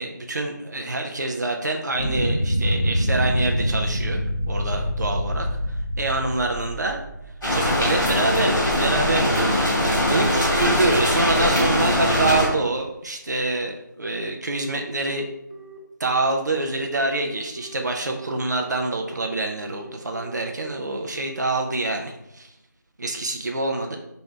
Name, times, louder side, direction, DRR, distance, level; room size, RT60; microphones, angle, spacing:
voice 1, 0.0-7.0 7.5-15.3 16.0-22.5 23.0-24.0, right 2 dB, 60° right, 2 dB, 0.4 m, -26 dB
sound 1, 2.0-7.7, equal, 20° left, 0.4 m, -25 dB
sound 2, 7.4-12.5, equal, 5° left, 0.8 m, -21 dB
Telephone, 14.0-21.4, right 3 dB, 20° right, 1.0 m, -41 dB
3.2 x 2.6 x 4.5 m, 0.85 s
figure-of-eight pair, 180°, 11 cm